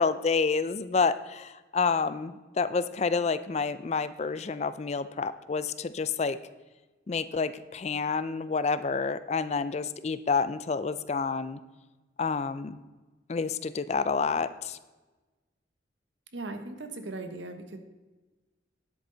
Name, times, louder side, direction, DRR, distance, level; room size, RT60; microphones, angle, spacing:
voice 1, 0.0-6.4 7.1-11.6 12.2-12.8 13.3-14.8, left 4 dB, 35° left, 14 dB, 0.4 m, -29 dB
voice 2, 16.3-17.8, right 2 dB, 75° right, 7 dB, 1.1 m, -38 dB
10.5 x 8.2 x 3.9 m, 1.2 s
head